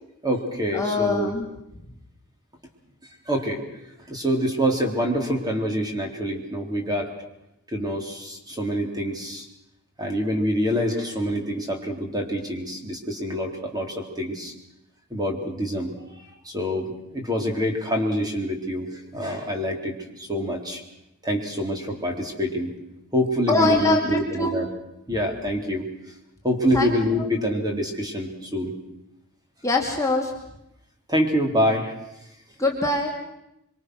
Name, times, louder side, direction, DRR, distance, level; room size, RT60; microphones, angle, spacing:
voice 1, 0.2-1.3 3.3-3.6 4.1-7.1 7.7-9.5 10.0-14.5 15.1-16.1 16.4-20.8 21.2-22.7 23.1-24.7 25.1-25.9 26.4-28.7 31.1-31.9, equal, 20° right, 2 dB, 3.8 m, -26 dB
voice 2, 0.7-1.5 23.5-24.6 26.7-27.2 29.6-30.3 32.6-33.1, left 2 dB, 15° left, 0 dB, 2.4 m, -23 dB
25.0 x 25.0 x 6.4 m, 0.86 s
head